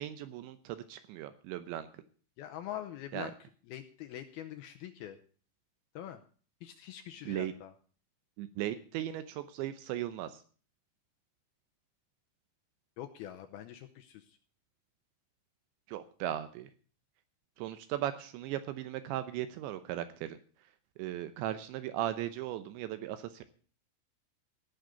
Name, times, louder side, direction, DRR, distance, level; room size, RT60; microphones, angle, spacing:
voice 1, 0.0-1.9 3.1-3.3 7.3-7.5 8.4-10.4 15.9-16.7 17.6-20.4 21.0-23.5, right 12 dB, 80° right, 11 dB, 3.1 m, -37 dB
voice 2, 2.4-3.3 3.7-5.2 6.0-6.2 6.6-7.7 13.0-14.4, left 11 dB, 80° left, 7 dB, 2.3 m, -44 dB
17.0 x 6.5 x 8.0 m, 0.42 s
omnidirectional pair, 5.2 m